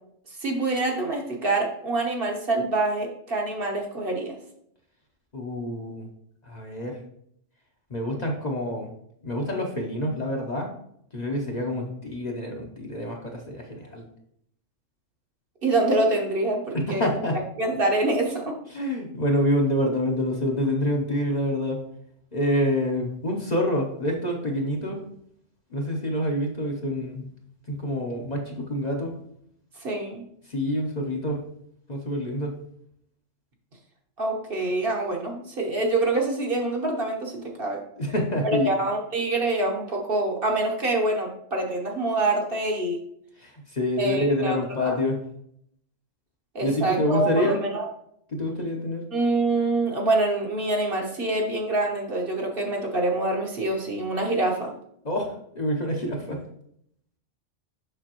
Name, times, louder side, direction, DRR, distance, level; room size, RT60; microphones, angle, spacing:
voice 1, 0.4-4.3 15.6-17.1 17.6-18.5 29.8-30.2 34.2-37.8 38.6-43.0 44.0-44.9 46.5-47.9 49.1-54.7, right 2 dB, 50° right, 0 dB, 1.3 m, -25 dB
voice 2, 5.3-6.1 6.4-7.0 7.9-8.9 9.2-10.7 11.1-14.0 16.7-17.4 18.7-21.8 22.3-25.0 25.7-27.3 27.7-29.1 30.5-31.4 31.9-32.6 38.0-38.7 43.4-45.2 46.6-47.6 48.3-49.0 55.0-56.4, left 1 dB, 40° left, 0 dB, 0.9 m, -27 dB
6.7 x 5.6 x 3.0 m, 0.70 s
omnidirectional pair, 1.2 m